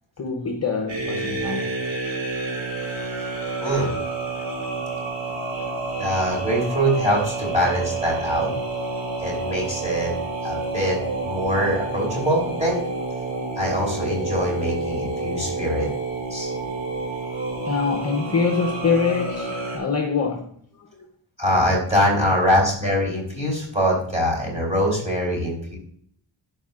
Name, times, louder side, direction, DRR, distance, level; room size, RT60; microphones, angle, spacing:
voice 1, 0.2-1.8 13.5-13.6 17.6-20.5 20.8-21.0, left 5 dB, 35° left, 0.8 m, -25 dB
sound 1, 0.9-19.8, right 3 dB, 90° right, 2.9 m, -29 dB
voice 2, 6.0-8.5 9.2-10.1 10.4-12.8 13.6-15.9 16.3-16.5 21.4-25.8, equal, 15° right, 3.2 m, -23 dB
12.0 x 4.9 x 2.4 m
wide cardioid pair, 180°, 46 cm